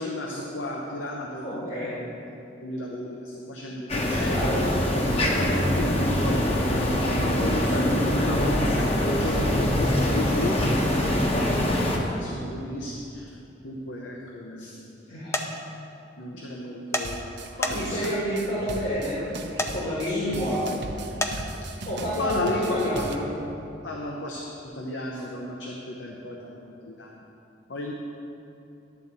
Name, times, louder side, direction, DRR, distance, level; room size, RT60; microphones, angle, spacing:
voice 1, 0.0-2.2 2.6-4.5 5.4-13.3 13.6-14.9 16.2-17.3 17.6-18.1 20.1-20.6 22.1-23.1 23.8-24.5 24.7-27.2 27.7-27.9, left 1 dB, 75° left, -1 dB, 0.8 m, -33 dB
voice 2, 1.4-2.0 4.3-4.7 15.1-15.4 17.7-19.2 19.7-20.7 21.8-23.2, equal, 55° left, -6 dB, 1.7 m, -29 dB
sound 1, 3.9-12.0, left 1 dB, 35° left, 0.9 m, -24 dB
sound 2, 15.3-15.5 16.9-17.1 17.6-18.0 19.6-19.7 21.2-21.3, left 1 dB, 15° left, 0.5 m, -27 dB
sound 3, 17.0-23.2, right 2 dB, 65° right, 0.6 m, -38 dB
10.5 x 4.1 x 7.4 m, 2.8 s
head